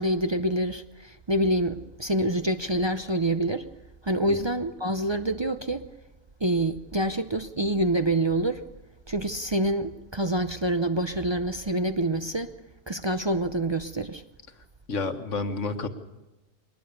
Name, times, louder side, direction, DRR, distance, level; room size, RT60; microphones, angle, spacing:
voice 1, 0.0-3.7 4.0-5.8 6.4-8.6 9.1-12.5 12.9-14.2, right 1 dB, 30° right, 0.5 m, -26 dB
voice 2, 14.9-15.9, left 3 dB, 65° left, 1.7 m, -29 dB
22.5 x 19.5 x 6.8 m
omnidirectional pair, 1.4 m